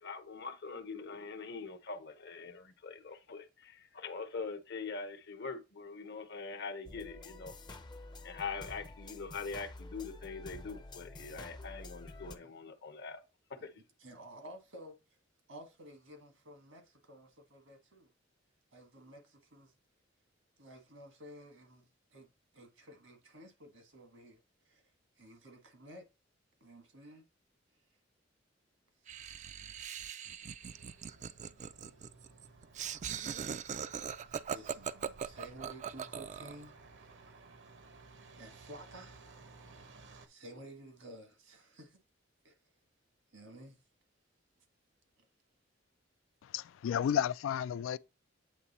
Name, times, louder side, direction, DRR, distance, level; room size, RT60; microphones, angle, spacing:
voice 1, 0.0-7.5 8.2-13.2, left 4 dB, 60° left, 0.9 m, -43 dB
sound 1, 6.9-12.4, left 2 dB, 25° left, 0.5 m, -49 dB
voice 2, 14.0-15.0 15.5-18.1 18.7-19.7 20.6-22.3 22.5-24.4 24.7-24.8 25.2-26.0 26.6-27.2 34.5-36.7 37.0-37.3 38.4-39.3 39.7-39.9 40.3-42.0 42.4-42.5 43.3-43.8, right 1 dB, 85° right, 1.6 m, -53 dB
Laughter, 29.1-36.6, right 7 dB, 40° right, 0.3 m, -40 dB
Truck, 30.6-40.3, right 3 dB, 65° right, 0.8 m, -57 dB
voice 3, 46.4-48.0, left 9 dB, 80° left, 0.3 m, -32 dB
8.1 x 3.2 x 4.1 m
head